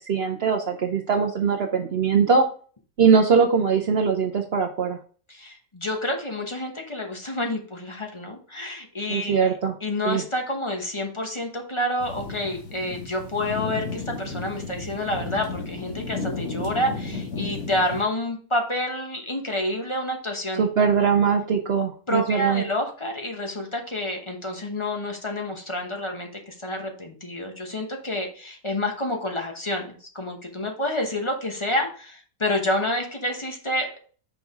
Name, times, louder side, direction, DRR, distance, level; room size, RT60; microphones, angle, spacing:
voice 1, 0.1-2.4 3.0-5.0 9.1-9.7 10.0-10.2 20.6-22.6, right 6 dB, 55° right, 4 dB, 0.7 m, -21 dB
voice 2, 5.3-9.4 9.8-20.6 22.1-34.0, left 1 dB, 25° left, 2 dB, 0.8 m, -28 dB
sound 1, 12.0-18.0, left 3 dB, 75° left, 2.3 m, -33 dB
6.3 x 4.6 x 3.6 m, 0.42 s
omnidirectional pair, 1.6 m